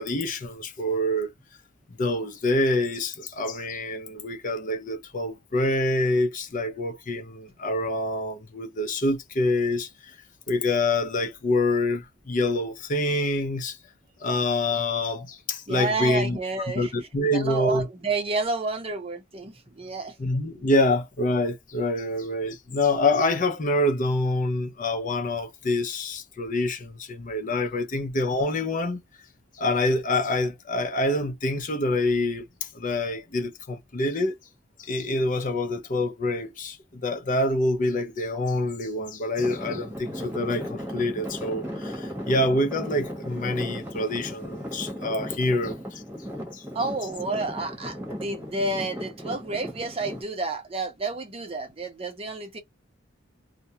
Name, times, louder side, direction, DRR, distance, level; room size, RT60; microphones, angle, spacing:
voice 1, 0.0-1.3 2.0-10.2 10.5-13.8 14.2-16.4 16.7-17.9 20.2-29.0 29.5-34.3 34.8-46.0 46.5-46.6, left 2 dB, 40° left, 0.6 m, -26 dB
voice 2, 15.7-16.9 17.3-20.1 46.7-52.6, right 3 dB, 30° right, 0.7 m, -30 dB
Traffic noise roadway noise / Engine, 39.4-50.2, equal, 10° right, 1.1 m, -36 dB
2.4 x 2.1 x 2.7 m
head